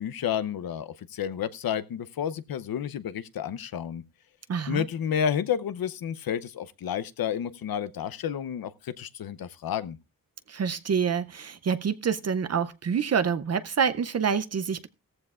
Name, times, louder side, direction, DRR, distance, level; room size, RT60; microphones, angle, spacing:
voice 1, 0.0-4.0 4.7-10.0, left 9 dB, 85° left, 0.7 m, -31 dB
voice 2, 4.5-4.8 10.5-14.9, right 6 dB, 45° right, 0.6 m, -27 dB
15.5 x 14.5 x 2.4 m
wide cardioid pair, 120°, 35 cm